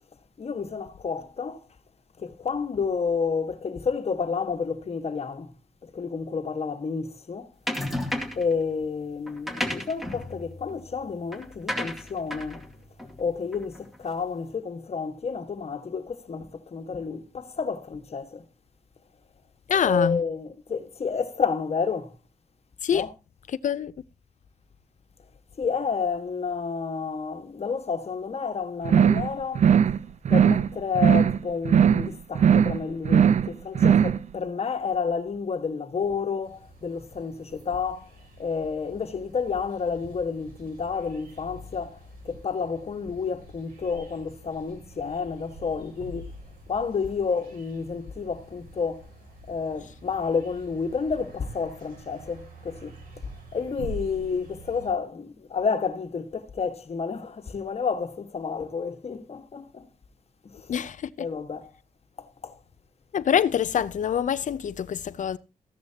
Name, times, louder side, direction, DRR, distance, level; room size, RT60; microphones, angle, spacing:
voice 1, 0.4-1.6 2.2-5.5 5.8-7.5 8.3-12.7 13.2-18.4 19.8-22.1 22.9-23.1 25.6-29.9 30.3-38.1 38.4-42.0 42.2-46.3 46.7-49.1 49.5-59.9 60.4-60.7 61.2-61.7 62.2-62.6, left 5 dB, 45° left, 1.6 m, -30 dB
sound 1, 7.7-8.5 9.3-14.0, left 1 dB, ahead, 2.4 m, -33 dB
voice 2, 19.7-20.2 22.8-23.1 23.6-23.9 60.7-61.1 63.1-65.4, left 8 dB, 60° left, 0.6 m, -25 dB
sound 2, 28.8-29.3 29.5-30.0 30.2-30.7 30.9-31.4 31.6-32.1 32.3-32.8 33.0-33.5 33.7-34.2, right 8 dB, 55° right, 0.6 m, -19 dB
sound 3, 36.4-54.9, right 1 dB, 85° right, 7.0 m, -46 dB
15.0 x 10.5 x 2.9 m
cardioid pair, 95°, 14 cm